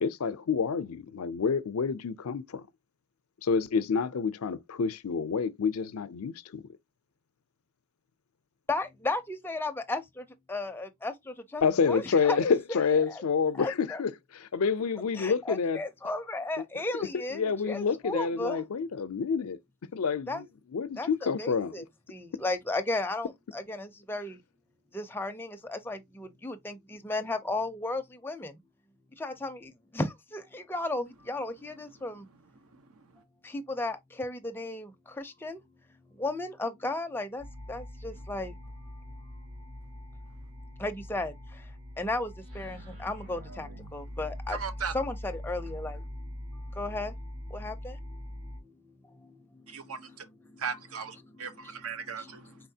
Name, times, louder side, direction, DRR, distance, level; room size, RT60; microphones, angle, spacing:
voice 1, 0.0-2.6 3.4-6.6 11.6-15.8 17.3-19.6 19.9-20.5 20.7-21.8, left 5 dB, 80° left, 0.5 m, -28 dB
voice 2, 8.7-12.5 13.1-13.2 13.5-14.0 15.1-18.7 20.3-20.5 21.0-21.1 21.4-24.4 24.9-28.6 29.2-32.3 33.4-35.6 36.1-38.6 39.1-39.4 40.6-44.6 44.9-46.3 46.7-47.1 47.5-50.6 51.3-51.8 52.2-52.4, left 2 dB, 10° left, 0.5 m, -35 dB
voice 3, 32.8-33.1 44.5-44.9 49.7-50.3 50.6-52.6, right 6 dB, 85° right, 0.9 m, -37 dB
sound 1, 37.4-48.6, left 1 dB, 70° right, 2.8 m, -42 dB
4.6 x 4.0 x 2.7 m
head